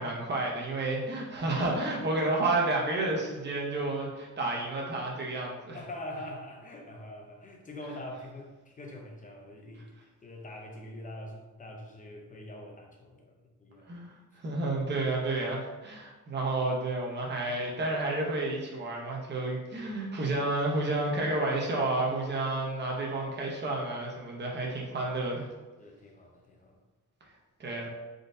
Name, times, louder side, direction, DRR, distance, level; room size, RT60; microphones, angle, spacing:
voice 1, 0.0-5.8 13.9-14.2 14.4-25.5 27.6-27.9, right 2 dB, 35° right, -2 dB, 0.9 m, -30 dB
voice 2, 5.7-13.9 25.8-26.8, left 1 dB, 25° left, 0 dB, 0.7 m, -44 dB
3.9 x 3.8 x 2.7 m, 1.2 s
wide cardioid pair, 135°, 31 cm